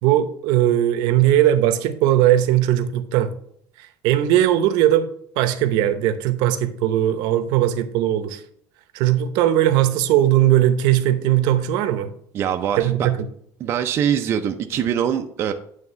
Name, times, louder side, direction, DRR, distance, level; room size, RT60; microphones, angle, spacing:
voice 1, 0.0-3.3 3.8-5.1 5.4-8.4 8.9-12.1 12.8-13.3, right 12 dB, 70° right, 0.8 m, -19 dB
voice 2, 12.3-13.1 13.6-15.5, right 9 dB, 35° right, 0.4 m, -23 dB
9.2 x 3.5 x 5.6 m
cardioid pair, 170°, 7 cm